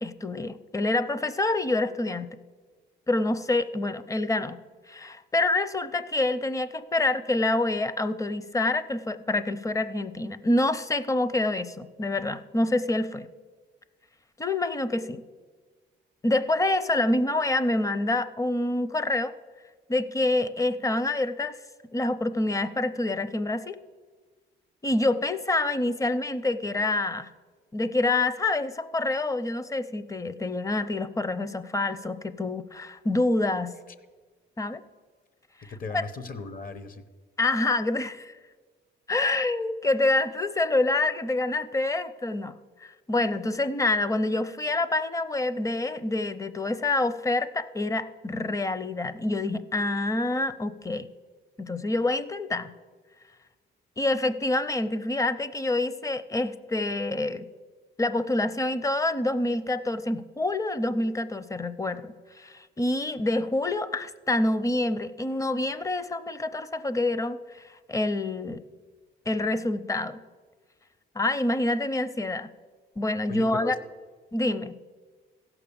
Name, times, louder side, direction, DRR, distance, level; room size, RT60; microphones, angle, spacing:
voice 1, 0.0-2.4 3.1-4.6 4.9-13.3 14.4-15.2 16.2-19.3 19.9-21.6 21.9-23.8 24.8-27.3 27.7-33.7 34.6-34.8 35.6-36.0 37.4-38.3 39.1-42.5 42.8-51.1 51.6-52.7 54.0-57.5 58.0-68.6 69.3-70.2 71.1-72.5 73.0-73.7 74.3-74.7, left 2 dB, 15° left, 14 dB, 0.6 m, -27 dB
voice 2, 35.7-37.0 73.3-73.8, left 3 dB, 45° left, 12 dB, 1.0 m, -36 dB
15.5 x 5.9 x 7.0 m, 1.4 s
cardioid pair, 90°, 20 cm